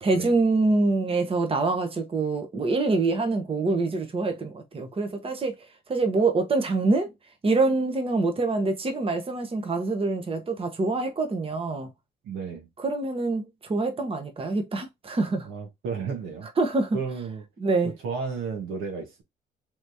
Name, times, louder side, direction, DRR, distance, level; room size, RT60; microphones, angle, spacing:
voice 1, 0.0-5.5 5.9-7.1 7.4-11.9 12.8-15.5 16.6-17.0 17.6-17.9, right 3 dB, 30° right, 0.9 m, -25 dB
voice 2, 12.2-12.7 15.4-16.5 16.9-17.4 17.8-19.2, right 5 dB, 90° right, 1.3 m, -33 dB
3.4 x 3.0 x 2.7 m
cardioid pair, 90°, 20 cm